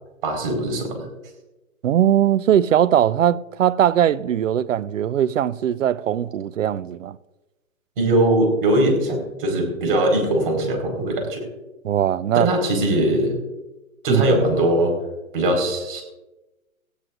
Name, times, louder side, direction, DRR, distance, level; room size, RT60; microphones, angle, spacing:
voice 1, 0.2-1.1 8.0-11.4 12.3-13.3 14.0-14.9 15.3-16.0, right 1 dB, 40° right, 4.8 m, -20 dB
voice 2, 1.8-7.2 11.8-12.5 14.1-14.3, right 10 dB, 65° right, 0.6 m, -20 dB
18.0 x 15.5 x 2.6 m
hypercardioid pair, 170°, 41 cm